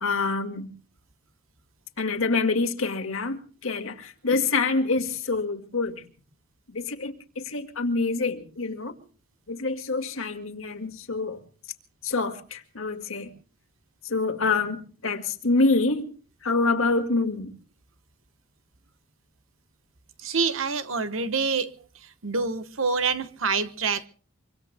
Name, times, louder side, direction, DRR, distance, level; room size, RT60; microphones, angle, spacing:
voice 1, 0.0-0.7 2.0-6.0 6.7-9.0 9.5-11.4 12.0-13.3 14.0-16.1 16.4-17.5, left 3 dB, 85° left, 2.0 m, -26 dB
voice 2, 20.2-21.7 22.2-24.1, right 4 dB, 75° right, 1.1 m, -26 dB
25.0 x 25.0 x 2.2 m
head